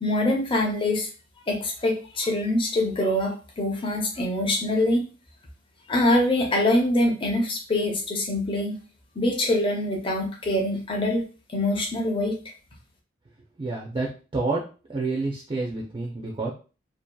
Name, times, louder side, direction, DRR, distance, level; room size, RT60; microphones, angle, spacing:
voice 1, 0.0-1.1 1.5-5.0 5.9-8.8 9.2-11.2 11.5-12.4, left 1 dB, 25° left, 0 dB, 0.6 m, -24 dB
voice 2, 13.6-14.6 14.9-16.5, right 3 dB, 25° right, -1 dB, 0.4 m, -28 dB
2.7 x 2.4 x 2.2 m, 0.35 s
head